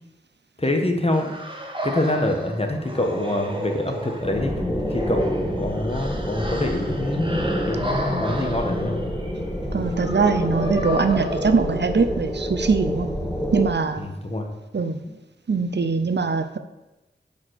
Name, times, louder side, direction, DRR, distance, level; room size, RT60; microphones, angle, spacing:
voice 1, 0.6-1.4 1.8-4.5 4.9-9.0 14.0-14.5 15.0-15.1, left 1 dB, 30° left, 3 dB, 1.5 m, -25 dB
sound 1, 1.1-12.2, equal, 25° right, 1.5 m, -33 dB
sound 2, 4.2-13.7, equal, 5° left, 1.5 m, -27 dB
voice 2, 9.7-13.1 13.5-14.1 14.7-15.0 15.5-16.6, right 4 dB, 65° right, 9 dB, 0.7 m, -22 dB
6.9 x 5.4 x 6.6 m, 1.0 s
wide cardioid pair, 45°, 19 cm